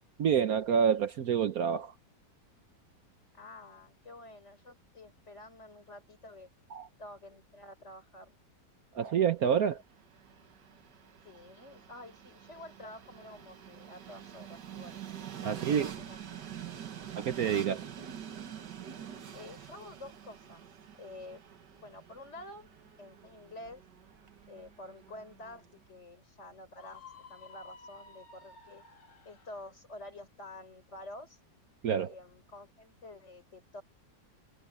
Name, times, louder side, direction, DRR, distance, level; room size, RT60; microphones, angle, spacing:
voice 1, 0.2-1.9 6.7-6.9 8.9-9.8 15.5-15.9 17.2-17.9 31.8-32.1, right 7 dB, 60° right, 1.2 m, -28 dB
voice 2, 3.3-6.5 7.0-8.4 11.2-15.0 15.4-16.2 16.5-17.0 19.3-20.6 21.0-21.4 21.8-22.7 23.0-23.8 24.5-27.0 27.3-28.8 29.2-31.4 31.9-33.8, left 2 dB, 40° left, 4.7 m, -49 dB
Train, 9.7-25.8, right 9 dB, 75° right, 2.0 m, -46 dB
Screaming, 26.7-29.7, left 4 dB, 80° left, 2.6 m, -53 dB
omnidirectional pair, 1.9 m